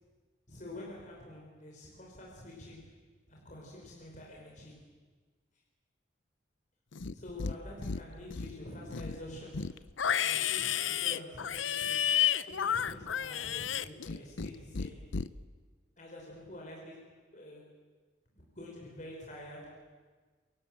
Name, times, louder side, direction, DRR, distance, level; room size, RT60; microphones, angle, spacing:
voice 1, 0.5-3.0 3.3-4.9 7.1-9.7 10.2-12.1 12.5-15.1 16.0-17.7 18.4-19.9, left 1 dB, 40° left, -2 dB, 5.4 m, -47 dB
Livestock farm animals working animals, 6.9-7.6 7.8-8.5 8.9-14.5 14.8-15.3, left 8 dB, 85° left, 0.7 m, -31 dB
29.0 x 23.5 x 7.7 m, 1.4 s
head